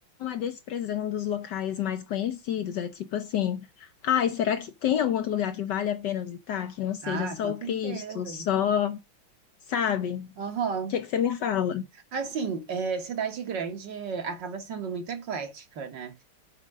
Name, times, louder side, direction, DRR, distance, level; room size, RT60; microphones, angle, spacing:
voice 1, 0.2-9.0 9.7-10.3 10.9-11.9, left 9 dB, 70° left, 1.1 m, -28 dB
voice 2, 7.0-8.5 10.4-11.0 12.1-16.2, right 5 dB, 60° right, 2.0 m, -33 dB
7.3 x 5.1 x 6.3 m
omnidirectional pair, 2.3 m